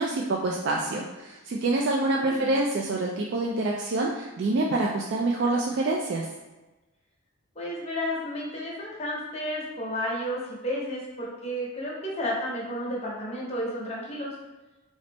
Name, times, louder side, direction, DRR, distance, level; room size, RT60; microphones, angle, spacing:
voice 1, 0.0-6.3, right 2 dB, 55° right, -1 dB, 0.3 m, -26 dB
voice 2, 2.1-2.5 7.5-14.4, equal, 30° left, -4 dB, 0.8 m, -32 dB
3.8 x 2.0 x 3.3 m, 1.1 s
head